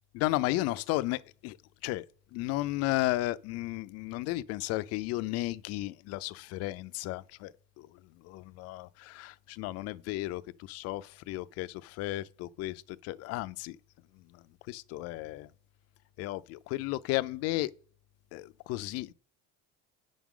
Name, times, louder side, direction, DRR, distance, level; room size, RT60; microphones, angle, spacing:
voice 1, 0.1-1.6 1.8-2.0 2.3-7.9 8.2-13.8 14.7-15.5 16.2-17.7 18.3-19.1, left 18 dB, 55° left, 0.4 m, -34 dB
9.1 x 6.1 x 3.7 m
cardioid pair, 175°, 31 cm